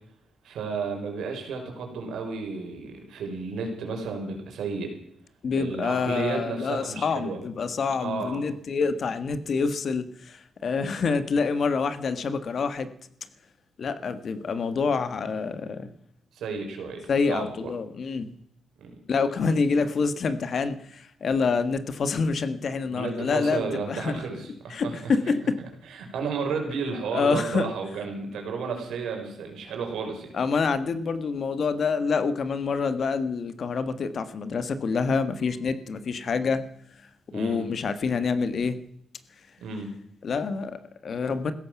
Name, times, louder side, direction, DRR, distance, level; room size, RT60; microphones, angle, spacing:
voice 1, 0.4-4.9 5.6-7.4 8.0-8.4 16.3-17.7 18.8-18.9 22.9-25.1 25.8-30.3 37.3-37.7 39.6-40.0, right 5 dB, 85° right, 3 dB, 4.8 m, -32 dB
voice 2, 5.4-12.9 13.8-15.9 17.1-18.3 19.1-24.2 24.7-25.6 27.1-27.7 30.3-36.7 37.3-38.8 40.2-41.5, left 5 dB, 60° left, 12 dB, 1.6 m, -27 dB
16.0 x 14.0 x 6.0 m, 0.68 s
cardioid pair, 65°, 0 cm